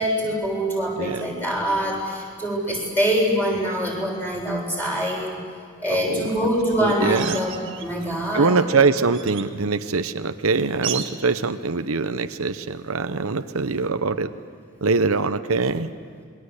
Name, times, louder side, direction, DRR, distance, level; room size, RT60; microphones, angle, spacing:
voice 1, 0.0-5.3 5.8-8.6, equal, 10° left, -2 dB, 6.8 m, -24 dB
voice 2, 5.9-6.3 6.8-7.4 8.3-14.3 14.8-15.9, right 4 dB, 75° right, 10 dB, 0.8 m, -23 dB
sound 1, 7.1-8.1 8.6-9.5 10.8-11.3 13.6-13.7, right 10 dB, 60° right, 1.6 m, -34 dB
27.5 x 22.0 x 8.2 m, 2.2 s
head